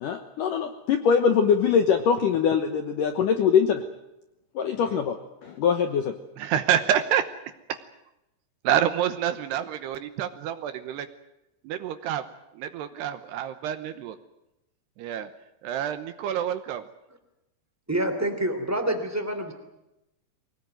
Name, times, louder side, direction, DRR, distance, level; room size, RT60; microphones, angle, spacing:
voice 1, 0.0-3.8 4.6-5.2 5.4-6.1, left 7 dB, 70° left, 6 dB, 2.0 m, -22 dB
voice 2, 6.4-7.3 7.7-7.8 8.6-11.1 11.6-12.3 12.6-14.2 15.0-15.3 15.6-16.8, right 10 dB, 75° right, 10 dB, 2.8 m, -27 dB
voice 3, 17.9-19.5, right 1 dB, 5° right, 6 dB, 1.8 m, -27 dB
24.0 x 18.5 x 9.2 m, 0.91 s
omnidirectional pair, 5.4 m